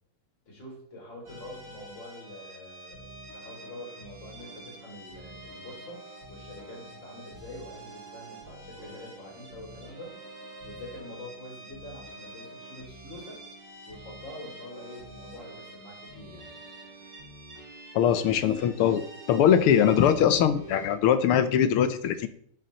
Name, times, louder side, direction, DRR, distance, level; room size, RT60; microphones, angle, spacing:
voice 1, 0.5-3.1 3.3-6.0 6.3-10.2 10.6-13.4 13.9-16.5, left 1 dB, 60° left, -2 dB, 4.9 m, -45 dB
sound 1, 1.2-21.0, right 2 dB, 65° right, 4.4 m, -46 dB
voice 2, 17.9-22.3, left 9 dB, 90° left, 12 dB, 1.8 m, -22 dB
13.0 x 8.0 x 4.1 m, 0.63 s
omnidirectional pair, 2.4 m